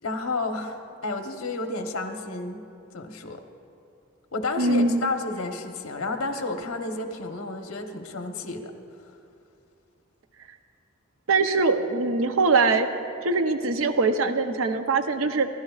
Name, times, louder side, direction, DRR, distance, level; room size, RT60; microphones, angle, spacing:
voice 1, 0.0-2.6 2.9-3.4 4.3-8.7, left 3 dB, 90° left, 5 dB, 1.0 m, -31 dB
voice 2, 4.6-5.0 11.3-12.9 13.2-15.5, right 3 dB, 75° right, 8 dB, 0.7 m, -22 dB
27.0 x 12.5 x 2.4 m, 2.5 s
head